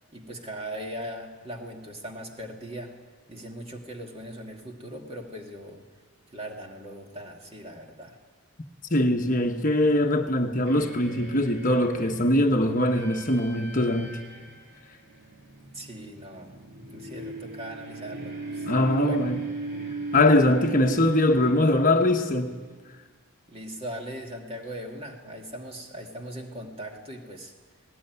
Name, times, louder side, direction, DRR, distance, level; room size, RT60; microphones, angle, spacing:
voice 1, 0.1-2.9 3.3-5.8 6.3-8.2 15.7-19.2 23.5-27.5, equal, 25° right, 2.5 m, -39 dB
voice 2, 8.9-14.2 18.6-19.4 20.1-22.6, left 1 dB, 35° left, 1.2 m, -22 dB
sound 1, 10.7-22.7, right 3 dB, 50° right, 3.1 m, -38 dB
18.5 x 18.5 x 9.5 m
head